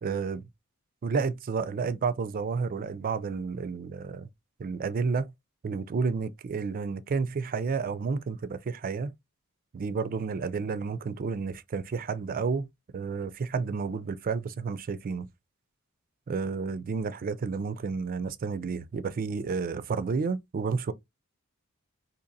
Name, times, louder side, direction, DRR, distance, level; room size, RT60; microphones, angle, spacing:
voice 1, 0.0-0.5 1.0-4.3 4.6-5.3 5.6-9.1 9.7-12.7 12.9-15.3 16.3-20.9, right 5 dB, 40° right, 0.3 m, -31 dB
3.9 x 2.8 x 2.6 m
head